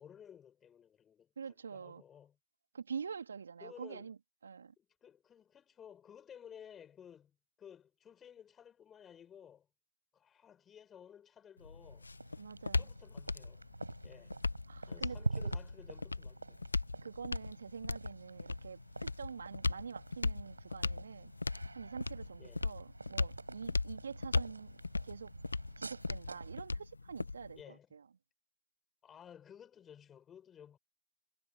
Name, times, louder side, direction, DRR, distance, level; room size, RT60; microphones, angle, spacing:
voice 1, 0.0-2.4 3.6-4.1 4.8-9.7 10.1-12.1 12.7-13.7 14.0-14.4 14.9-16.7 22.4-22.6 27.6-27.9 29.0-30.8, left 8 dB, 10° left, 7.5 m, -56 dB
voice 2, 1.4-2.0 2.7-4.7 12.4-12.9 14.7-15.2 17.0-21.3 21.7-24.7 25.0-25.3 25.8-28.0, right 6 dB, 55° right, 3.5 m, -46 dB
sound 1, 11.6-27.6, left 3 dB, 75° left, 1.1 m, -38 dB
sound 2, 11.8-26.7, right 3 dB, 75° right, 6.9 m, -46 dB
figure-of-eight pair, 145°, 0 cm